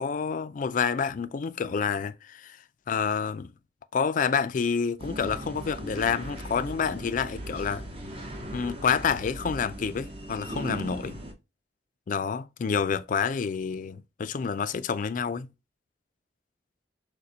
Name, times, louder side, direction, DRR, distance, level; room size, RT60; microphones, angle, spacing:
voice 1, 0.0-2.6 2.9-3.5 3.9-7.9 8.5-11.2 12.1-15.5, left 6 dB, 50° left, 0.4 m, -28 dB
sound 1, 5.0-11.3, right 1 dB, 35° right, 0.9 m, -38 dB
6.4 x 2.2 x 2.8 m
head